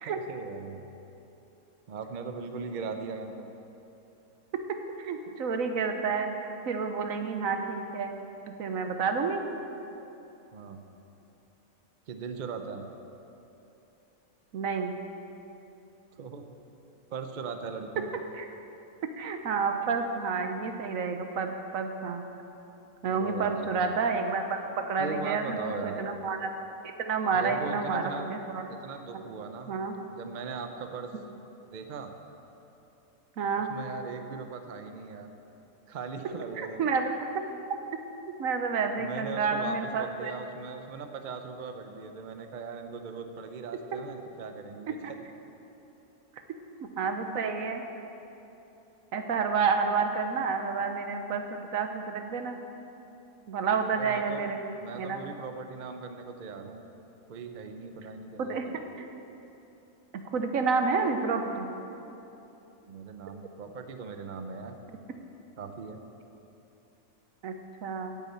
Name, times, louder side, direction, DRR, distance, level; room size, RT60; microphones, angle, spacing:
voice 1, 0.0-0.9 1.9-3.5 10.5-10.8 12.1-12.9 16.2-16.4 17.1-18.1 23.1-23.8 25.0-26.0 27.3-28.3 28.7-29.8 30.0-31.1 31.7-32.1 33.5-35.3 35.9-36.9 39.0-45.3 53.9-54.4 54.8-56.8 57.3-58.8 62.8-64.8 65.6-66.0, right 5 dB, 50° right, 6 dB, 0.6 m, -39 dB
voice 2, 5.0-8.2 8.6-9.4 14.5-14.9 18.3-18.5 19.0-22.2 23.0-24.4 24.8-26.5 27.0-28.7 29.1-29.3 29.7-29.9 33.4-33.7 36.6-37.1 38.4-40.3 47.0-47.8 49.1-52.6 53.5-54.6 55.0-55.2 58.4-58.6 59.0-59.1 60.1-61.7 67.4-67.5 67.8-68.2, right 5 dB, 70° right, 5 dB, 1.2 m, -29 dB
9.8 x 7.2 x 8.5 m, 2.9 s
omnidirectional pair, 1.5 m